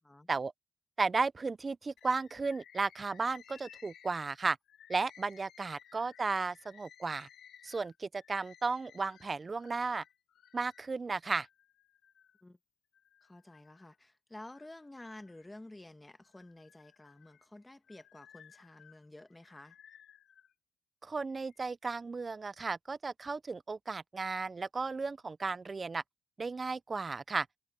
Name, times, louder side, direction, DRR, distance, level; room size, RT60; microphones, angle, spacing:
voice 1, 1.0-4.6 4.9-7.3 7.6-10.0 10.5-11.5 21.0-26.0 26.4-27.5, right 4 dB, 30° right, 0.4 m, -34 dB
Bird, 2.0-10.9 11.4-12.4 12.9-13.9 14.4-15.8 16.2-20.5 21.2-21.7, left 9 dB, 75° left, 1.5 m, -59 dB
voice 2, 13.2-19.8, left 1 dB, 10° left, 1.9 m, -51 dB
cardioid pair, 105°, 0 cm